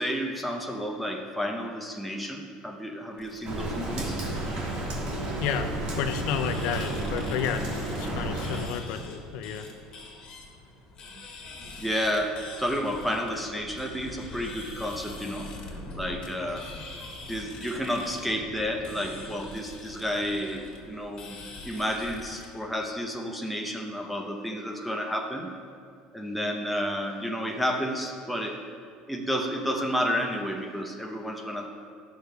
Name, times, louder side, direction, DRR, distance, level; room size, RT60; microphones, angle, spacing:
voice 1, 0.0-4.2 11.8-15.5 16.0-16.7 17.3-21.4 21.6-25.5 26.1-28.6 29.1-31.7, equal, ahead, 1 dB, 0.7 m, -31 dB
sound 1, 3.2-22.5, left 2 dB, 40° left, 1.6 m, -44 dB
Rain, 3.4-8.7, right 1 dB, 50° right, 1.6 m, -32 dB
voice 2, 5.4-9.7, left 8 dB, 70° left, 7 dB, 0.5 m, -31 dB
11.5 x 6.4 x 2.3 m, 2.2 s
supercardioid pair, 100°, 2 cm